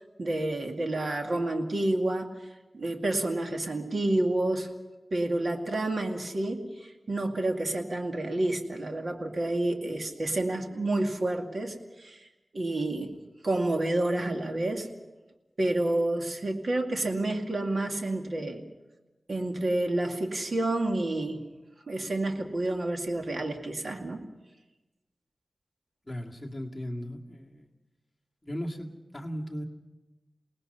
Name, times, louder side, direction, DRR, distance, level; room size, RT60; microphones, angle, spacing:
voice 1, 0.2-2.3 2.7-4.7 5.1-6.6 7.1-12.3 12.5-13.1 13.4-14.9 15.6-18.6 19.3-21.4 21.9-24.2, right 2 dB, 60° right, 3 dB, 2.3 m, -29 dB
voice 2, 26.0-27.7 28.4-29.6, equal, 15° left, -1 dB, 2.4 m, -37 dB
29.0 x 19.0 x 5.6 m, 1.1 s
wide cardioid pair, 85°, 0 cm